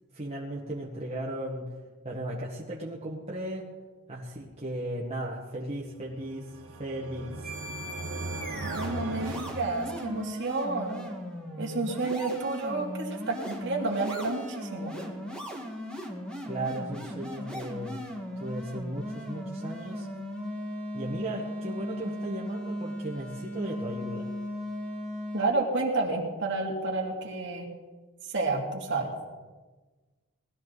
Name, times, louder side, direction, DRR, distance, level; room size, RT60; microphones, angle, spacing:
voice 1, 0.1-1.8 2.0-3.7 4.1-7.5 16.4-18.0 18.4-20.1 20.9-24.3, right 1 dB, 30° right, -4 dB, 1.6 m, -36 dB
sound 1, 6.1-10.4, right 2 dB, 80° right, 1.6 m, -39 dB
sound 2, 7.4-25.5, left 1 dB, 5° left, 1.8 m, -37 dB
voice 2, 8.6-11.1 11.6-14.9 25.3-27.7 28.3-29.1, right 3 dB, 55° right, -1 dB, 2.6 m, -30 dB
20.0 x 13.0 x 4.1 m, 1.3 s
head